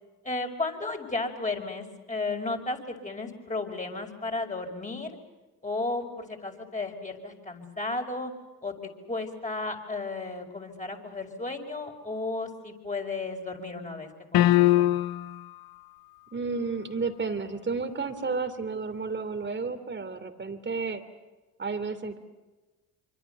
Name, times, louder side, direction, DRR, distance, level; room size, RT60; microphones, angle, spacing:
voice 1, 0.2-5.2 5.6-8.3 8.6-15.0, left 3 dB, 15° left, 3 dB, 5.4 m, -34 dB
sound 1, 14.3-15.4, left 14 dB, 50° left, 1.1 m, -21 dB
voice 2, 16.3-21.0 21.6-22.2, right 4 dB, 25° right, 8 dB, 2.9 m, -32 dB
26.5 x 25.5 x 6.9 m, 1.2 s
hypercardioid pair, 55°, 45 cm